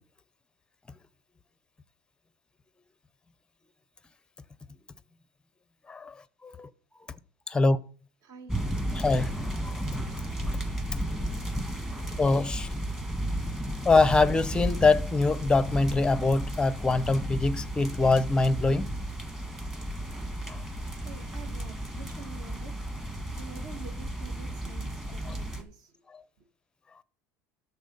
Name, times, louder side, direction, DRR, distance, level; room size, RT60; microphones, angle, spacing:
voice 1, 8.2-8.9 20.8-22.8 23.4-25.9, right 5 dB, 50° right, 1.8 m, -48 dB
sound 1, 8.5-25.6, right 1 dB, 5° right, 1.6 m, -33 dB
voice 2, 9.0-9.3 12.2-12.7 13.9-18.9, left 3 dB, 10° left, 0.6 m, -23 dB
13.0 x 4.4 x 5.4 m
supercardioid pair, 130°, 8 cm